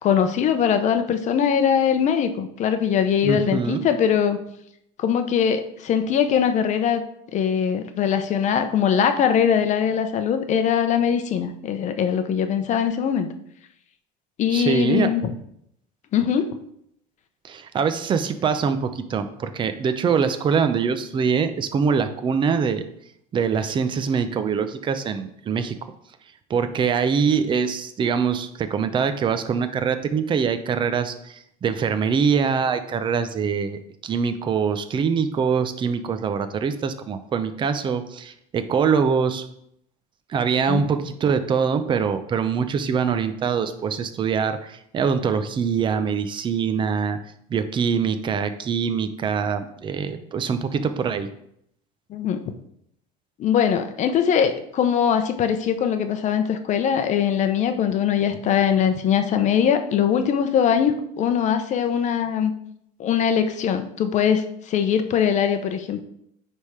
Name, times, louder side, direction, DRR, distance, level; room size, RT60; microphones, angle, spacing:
voice 1, 0.0-4.4 5.0-7.0 7.3-13.3 14.4-15.3 16.1-16.5 40.7-40.9 52.1-52.5 53.4-62.5 63.0-66.0, left 8 dB, 40° left, 8 dB, 0.7 m, -21 dB
voice 2, 3.2-3.8 14.5-15.1 17.4-22.9 23.3-25.7 26.5-39.4 40.3-47.2 47.5-51.3, right 6 dB, 25° right, 10 dB, 0.6 m, -23 dB
9.7 x 3.6 x 4.9 m, 0.73 s
cardioid pair, 135°, 19 cm